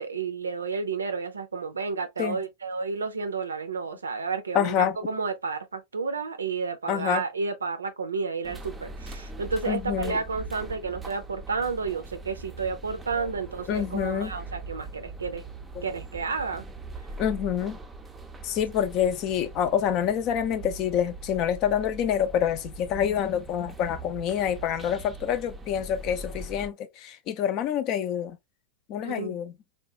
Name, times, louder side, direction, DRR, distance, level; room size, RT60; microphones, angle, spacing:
voice 1, 0.0-15.4 15.8-16.6 29.0-29.4, right 4 dB, 75° right, 0.5 m, -31 dB
voice 2, 4.5-4.9 6.9-7.2 9.7-10.2 13.2-13.3 13.7-14.3 17.2-17.8 18.4-28.4 28.9-29.5, left 9 dB, 40° left, 0.5 m, -27 dB
sound 1, 8.4-26.7, right 2 dB, 10° right, 0.5 m, -41 dB
3.6 x 2.2 x 2.6 m
figure-of-eight pair, 90°, 0 cm